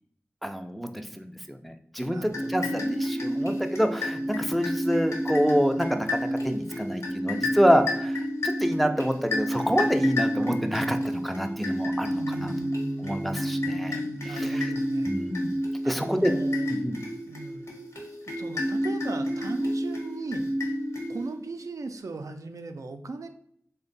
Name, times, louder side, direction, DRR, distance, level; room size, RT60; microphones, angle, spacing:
voice 1, 0.4-12.5 13.0-14.0 14.3-14.7 15.1-15.5 15.8-16.3 16.7-17.0, equal, ahead, 5 dB, 0.4 m, -27 dB
voice 2, 2.1-3.6 12.1-15.1 15.8-16.7 17.3-17.7 18.4-20.5 21.1-23.3, right 3 dB, 80° right, 6 dB, 0.3 m, -38 dB
sound 1, 2.3-21.5, equal, 60° left, 1.0 m, -30 dB
3.4 x 2.2 x 3.8 m, 0.66 s
wide cardioid pair, 65°, 6 cm